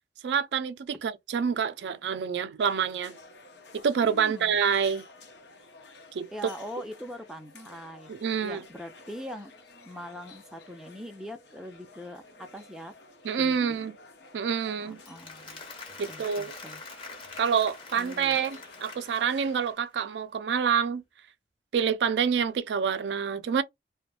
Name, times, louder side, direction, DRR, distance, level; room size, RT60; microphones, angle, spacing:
voice 1, 0.2-3.1 3.8-5.0 6.1-6.3 8.1-8.6 13.2-13.9 14.3-15.0 16.0-16.5 17.4-21.0 21.7-23.6, right 7 dB, 80° right, 0.4 m, -27 dB
sound 1, 2.6-19.7, left 2 dB, 85° left, 0.8 m, -52 dB
voice 2, 4.0-4.6 6.3-8.1 8.4-9.5 9.9-12.9 13.4-13.8 14.8-15.6 16.1-16.8 17.9-18.4, equal, 5° right, 0.4 m, -42 dB
Applause, 14.9-19.9, left 3 dB, 30° left, 0.8 m, -45 dB
2.4 x 2.1 x 3.3 m
head